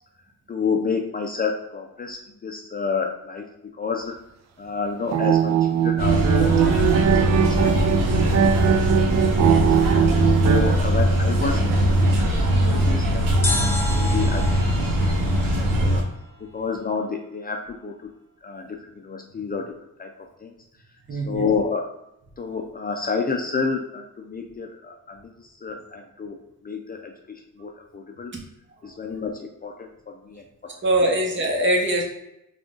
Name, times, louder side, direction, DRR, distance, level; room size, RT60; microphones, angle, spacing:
voice 1, 0.5-3.5 3.8-4.1 4.6-9.0 9.3-9.8 10.4-11.7 12.2-16.0 16.5-18.1 18.4-19.7 20.0-20.1 20.4-20.5 21.1-21.9 22.4-26.4 26.6-28.3 28.8-30.4, left 5 dB, 30° left, 2 dB, 0.4 m, -30 dB
sound 1, 5.0-10.8, right 9 dB, 55° right, 0.5 m, -21 dB
sound 2, 6.0-16.0, equal, 80° right, 1.0 m, -21 dB
sound 3, 13.4-16.5 16.8-16.9, left 2 dB, 5° left, 1.0 m, -31 dB
voice 2, 21.1-21.5 30.8-32.0, right 1 dB, 35° right, 0 dB, 1.1 m, -22 dB
3.6 x 2.4 x 3.7 m, 0.84 s
cardioid pair, 80°, 32 cm